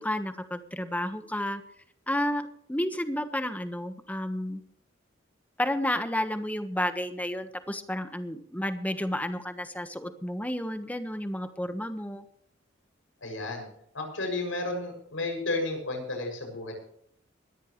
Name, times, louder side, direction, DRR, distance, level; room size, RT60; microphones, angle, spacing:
voice 1, 0.0-1.6 2.1-4.6 5.6-12.2, left 1 dB, 10° left, 8 dB, 1.3 m, -31 dB
voice 2, 13.2-13.7 13.9-16.7, left 2 dB, 90° left, 3 dB, 6.9 m, -32 dB
21.0 x 14.0 x 3.2 m, 0.65 s
head